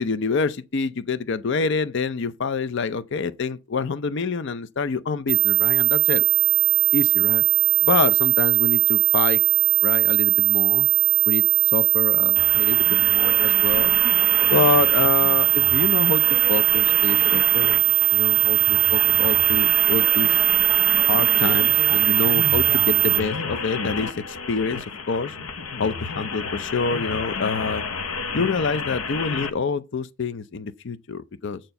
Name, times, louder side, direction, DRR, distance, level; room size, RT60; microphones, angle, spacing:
voice 1, 0.0-6.2 6.9-7.4 7.8-9.4 9.8-10.9 11.3-11.4 11.7-14.0 14.5-20.4 21.0-25.3 25.8-27.8 28.3-31.6, left 5 dB, 55° left, 0.5 m, -26 dB
sound 1, 5.3-23.2, right 40 dB or more, 60° right, 0.4 m, -19 dB
sound 2, 12.4-29.5, left 5 dB, 85° left, 0.8 m, -30 dB
7.6 x 4.4 x 6.8 m
head